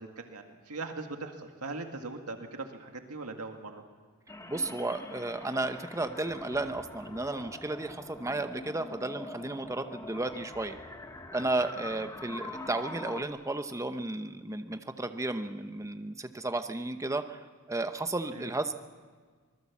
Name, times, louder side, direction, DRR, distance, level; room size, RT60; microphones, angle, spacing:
voice 1, 0.0-3.8 18.3-18.5, right 3 dB, 85° right, 4 dB, 2.0 m, -40 dB
sound 1, 4.3-13.2, left 2 dB, 15° left, 1.2 m, -44 dB
voice 2, 4.5-10.8 11.3-17.4 17.7-18.7, right 2 dB, 15° right, 8 dB, 0.9 m, -33 dB
25.0 x 20.0 x 7.3 m, 1.5 s
head